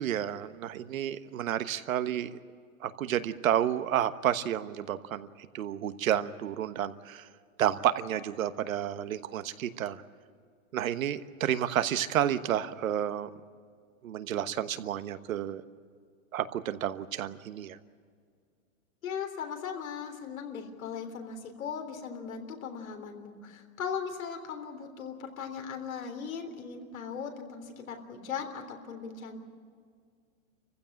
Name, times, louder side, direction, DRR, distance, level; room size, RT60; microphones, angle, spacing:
voice 1, 0.0-2.3 2.8-7.3 7.6-10.0 10.7-13.3 14.0-15.6 16.3-17.8, right 11 dB, 80° right, 11 dB, 1.3 m, -30 dB
voice 2, 19.0-29.4, left 6 dB, 85° left, 5 dB, 3.6 m, -38 dB
27.5 x 15.5 x 8.9 m, 2.1 s
hypercardioid pair, 155°, 40 cm